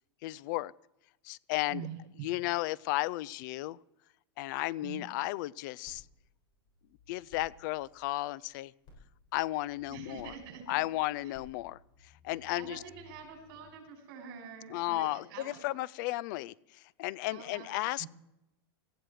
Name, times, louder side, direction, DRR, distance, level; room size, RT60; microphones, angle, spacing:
voice 1, 0.2-0.7 1.2-1.9 2.2-3.8 4.4-6.0 7.1-8.7 9.3-10.3 10.7-11.8 12.2-12.8 14.7-16.5 17.0-18.1, left 18 dB, 50° left, 23 dB, 0.5 m, -34 dB
voice 2, 1.7-2.3 4.8-5.1 9.9-10.6 11.2-11.3 12.6-15.6 17.3-17.7 18.0-18.1, right 7 dB, 50° right, 1 dB, 6.5 m, -45 dB
sound 1, 5.8-13.7, left 2 dB, 30° left, 7.3 m, -60 dB
18.0 x 15.0 x 4.8 m, 0.87 s
supercardioid pair, 140°, 13 cm